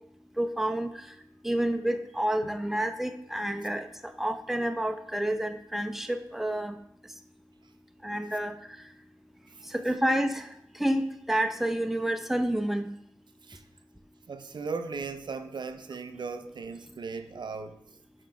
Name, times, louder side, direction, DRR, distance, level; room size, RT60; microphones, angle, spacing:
voice 1, 0.4-1.0 1.4-6.8 8.0-8.5 9.7-10.5 10.8-12.9, right 1 dB, 5° right, 7 dB, 0.6 m, -29 dB
voice 2, 14.3-17.8, right 4 dB, 80° right, 9 dB, 0.5 m, -37 dB
5.9 x 4.5 x 4.7 m, 0.76 s
cardioid pair, 45°, 8 cm